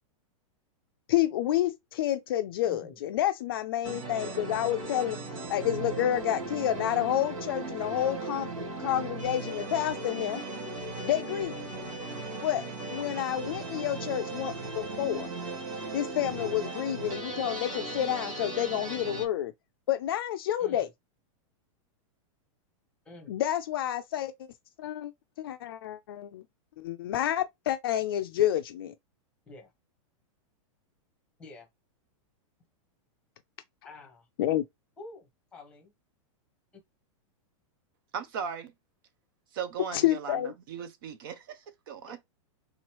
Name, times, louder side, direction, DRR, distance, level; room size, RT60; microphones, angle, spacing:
voice 1, 1.1-5.2 5.5-10.4 11.0-11.7 12.4-12.6 12.9-15.3 15.9-19.5 19.9-20.9 23.3-24.3 24.8-25.1 25.4-26.4 26.8-28.9 34.4-34.6 39.9-40.5, left 12 dB, 45° left, 0.4 m, -29 dB
voice 2, 2.6-3.0 20.6-20.9 23.0-23.3 29.5-29.7 31.4-31.7 33.8-34.3 35.0-35.9 42.1-42.2, left 3 dB, 5° left, 1.0 m, -48 dB
sound 1, 3.8-19.2, right 3 dB, 80° right, 2.3 m, -37 dB
voice 3, 38.1-38.7 39.5-42.2, right 7 dB, 40° right, 0.5 m, -38 dB
3.7 x 3.0 x 3.0 m
supercardioid pair, 175°, 17 cm